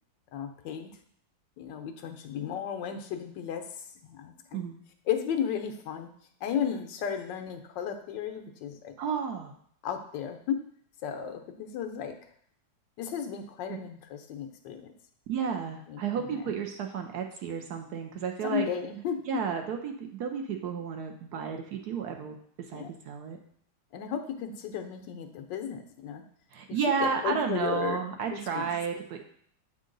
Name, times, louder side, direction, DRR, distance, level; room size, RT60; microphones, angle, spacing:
voice 1, 0.3-0.9 1.6-4.6 5.1-6.1 6.4-8.9 9.8-10.6 11.0-12.2 13.0-14.9 15.9-16.6 18.4-19.3 22.7-22.9 23.9-26.2 26.7-28.0 28.3-28.7, left 8 dB, 75° left, 6 dB, 1.3 m, -34 dB
voice 2, 9.0-9.5 13.7-13.8 15.3-18.7 19.3-22.3 22.7-23.4 26.5-29.2, right 6 dB, 70° right, 4 dB, 1.0 m, -32 dB
7.9 x 3.7 x 3.8 m, 0.63 s
omnidirectional pair, 2.0 m